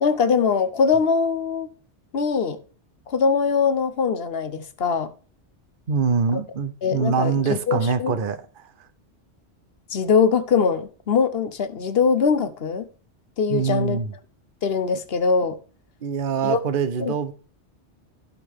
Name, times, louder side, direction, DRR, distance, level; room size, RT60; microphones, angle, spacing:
voice 1, 0.0-1.7 2.1-2.6 3.1-5.1 6.3-6.4 6.8-8.2 9.9-12.9 13.4-14.0 14.6-15.6 16.4-16.6 17.0-17.3, left 5 dB, 60° left, 1.2 m, -22 dB
voice 2, 5.9-8.7 13.5-14.1 16.0-17.3, right 6 dB, 50° right, 1.0 m, -24 dB
14.5 x 5.3 x 3.6 m
omnidirectional pair, 1.2 m